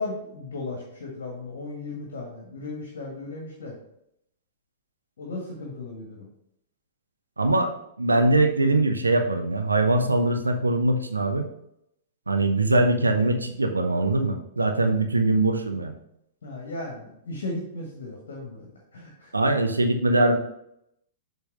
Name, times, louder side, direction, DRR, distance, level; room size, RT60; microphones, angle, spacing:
voice 1, 0.0-3.7 5.2-6.2 16.4-19.3, left 2 dB, 60° left, -1 dB, 1.6 m, -36 dB
voice 2, 7.4-7.7 8.0-11.5 12.3-15.9 19.3-20.4, right 2 dB, 80° right, 5 dB, 0.9 m, -22 dB
7.2 x 3.9 x 5.3 m, 0.77 s
figure-of-eight pair, 105°, 0 cm